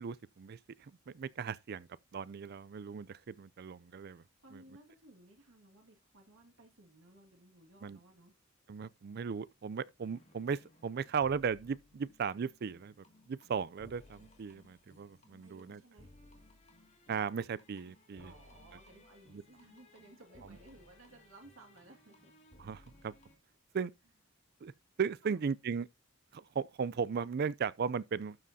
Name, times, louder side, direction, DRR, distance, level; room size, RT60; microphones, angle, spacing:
voice 1, 0.0-4.2 4.5-4.6 7.8-8.0 8.7-15.8 17.1-18.3 19.3-19.4 22.6-23.1 23.7-23.9 24.6-24.7 25.0-25.9 26.3-28.4, right 6 dB, 50° right, 0.4 m, -37 dB
voice 2, 4.4-8.4 15.4-16.1 18.2-22.3 25.2-25.4, right 2 dB, 80° right, 1.9 m, -59 dB
sound 1, 10.0-23.4, left 2 dB, 35° left, 2.1 m, -61 dB
12.0 x 7.5 x 2.7 m
head